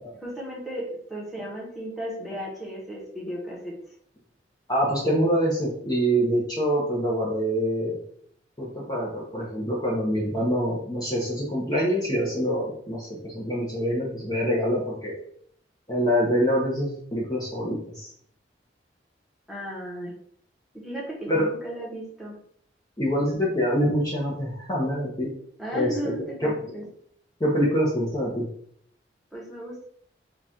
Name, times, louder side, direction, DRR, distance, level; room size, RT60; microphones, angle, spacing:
voice 1, 0.2-3.7 19.5-20.1 20.8-22.3 25.6-26.8 29.3-29.8, right 1 dB, ahead, -5 dB, 1.1 m, -35 dB
voice 2, 4.7-8.0 8.6-15.2 15.9-18.1 21.3-21.5 23.0-25.3 25.7-26.1 26.4-26.5 27.4-28.5, equal, 20° left, -6 dB, 0.8 m, -25 dB
3.9 x 2.4 x 4.3 m, 0.65 s
head